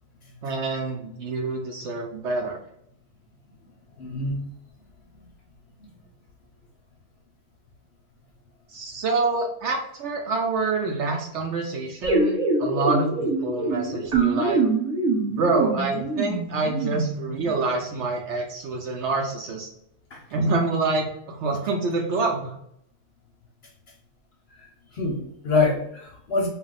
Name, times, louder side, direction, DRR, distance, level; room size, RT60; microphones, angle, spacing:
voice 1, 0.4-2.6 8.7-14.6 15.3-19.7 20.3-22.5, right 3 dB, 65° right, 0 dB, 0.8 m, -26 dB
voice 2, 4.0-4.4 5.8-6.0 20.1-20.2 24.9-26.5, left 3 dB, 60° left, -1 dB, 0.8 m, -25 dB
sound 1, 12.0-17.5, right 3 dB, 35° right, 0.9 m, -25 dB
2.4 x 2.1 x 3.9 m, 0.73 s
omnidirectional pair, 1.4 m